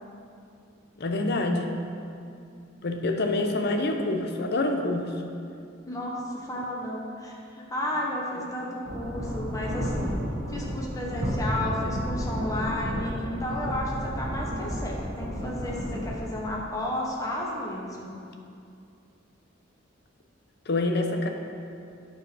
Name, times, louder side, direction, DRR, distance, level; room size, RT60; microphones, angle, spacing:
voice 1, 1.0-1.7 2.8-5.1 20.7-21.3, left 2 dB, 55° left, 4 dB, 0.7 m, -26 dB
voice 2, 5.9-10.1 10.5-18.1, left 1 dB, 15° left, -3 dB, 1.1 m, -32 dB
sound 1, 8.9-16.1, equal, 60° right, 1.6 m, -32 dB
9.1 x 4.7 x 6.1 m, 2.5 s
head